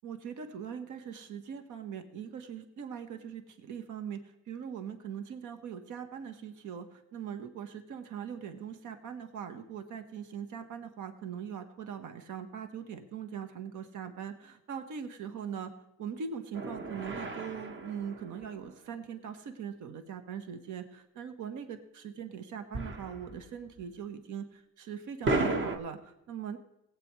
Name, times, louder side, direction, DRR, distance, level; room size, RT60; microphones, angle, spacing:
voice 1, 0.0-15.7 16.0-26.6, right 7 dB, 80° right, 8 dB, 1.1 m, -41 dB
sound 1, 16.5-19.0 22.7-23.5 23.8-23.9 25.2-25.8, right 2 dB, 40° right, 1.2 m, -34 dB
17.0 x 8.5 x 3.1 m, 0.90 s
cardioid pair, 90°, 30 cm